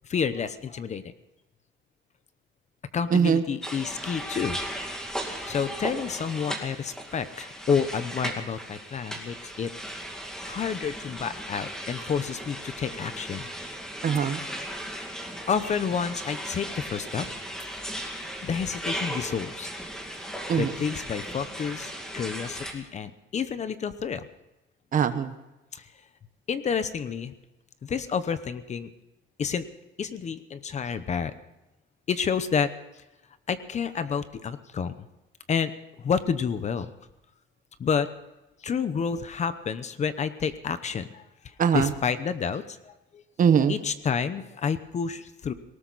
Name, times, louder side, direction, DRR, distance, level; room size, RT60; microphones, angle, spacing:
voice 1, 0.1-1.1 2.9-4.6 5.5-9.7 10.4-13.5 15.5-17.3 18.4-19.7 20.6-24.3 25.7-25.9 26.5-27.3 27.8-28.9 29.4-29.7 30.0-31.3 32.1-32.7 33.5-34.9 35.5-35.7 36.0-36.9 37.8-38.1 38.6-41.2 41.7-42.9 43.7-45.5, left 6 dB, 35° left, 12 dB, 0.9 m, -29 dB
voice 2, 3.1-3.4 14.0-14.4 20.5-20.7 24.9-25.3 41.6-41.9 43.4-43.7, right 7 dB, 40° right, 10 dB, 1.1 m, -21 dB
sound 1, 3.6-22.7, equal, 5° left, 2.3 m, -36 dB
19.0 x 18.5 x 4.1 m, 1.0 s
cardioid pair, 175°, 21 cm